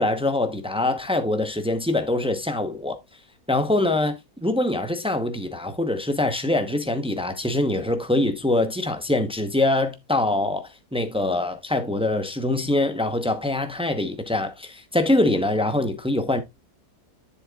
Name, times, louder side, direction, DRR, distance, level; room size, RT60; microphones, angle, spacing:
voice 1, 0.0-3.0 3.5-16.4, left 2 dB, 5° right, 0.5 m, -24 dB
11.0 x 7.1 x 2.4 m
omnidirectional pair, 1.8 m